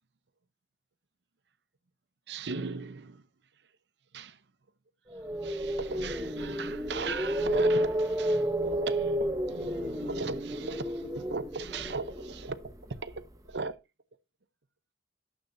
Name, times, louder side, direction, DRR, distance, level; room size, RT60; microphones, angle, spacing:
voice 1, 2.3-3.2 4.1-4.4 5.4-12.7 13.0-13.8, right 4 dB, 80° right, 0.7 m, -38 dB
sound 1, 5.1-13.2, equal, 20° right, 0.7 m, -31 dB
11.5 x 6.9 x 2.6 m
head